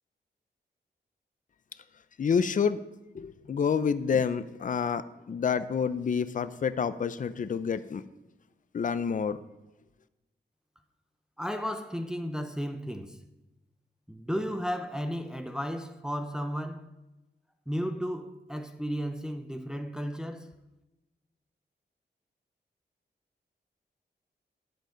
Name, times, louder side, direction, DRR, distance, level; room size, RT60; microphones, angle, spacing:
voice 1, 2.2-2.8 3.1-8.0 8.7-9.4, left 6 dB, 45° left, 0.5 m, -28 dB
voice 2, 11.4-13.2 14.1-16.9 17.7-20.5, equal, 5° right, 0.7 m, -34 dB
12.5 x 9.0 x 3.9 m
wide cardioid pair, 100°, 18 cm